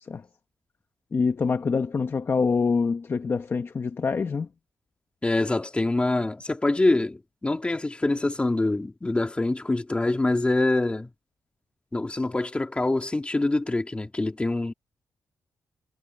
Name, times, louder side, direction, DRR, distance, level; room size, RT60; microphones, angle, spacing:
voice 1, 1.1-4.5, left 5 dB, 35° left, 0.9 m, -25 dB
voice 2, 5.2-11.1 11.9-14.7, left 2 dB, 15° left, 2.4 m, -25 dB
wide cardioid pair, 140°, 7 cm